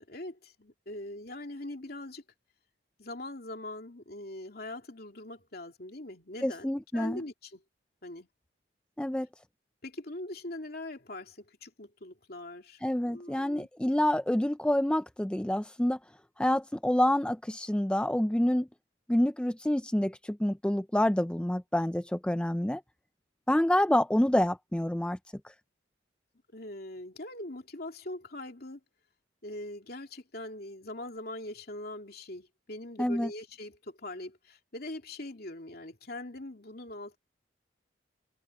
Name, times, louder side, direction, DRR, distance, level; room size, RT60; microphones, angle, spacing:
voice 1, 0.0-2.2 3.0-7.6 8.0-8.3 9.8-13.7 26.5-28.8 29.4-37.2, left 1 dB, 55° left, 3.0 m, -42 dB
voice 2, 6.4-7.2 9.0-9.3 12.8-16.0 16.4-18.7 19.1-22.8 23.5-25.2 33.0-33.3, left 1 dB, 5° left, 0.4 m, -27 dB
head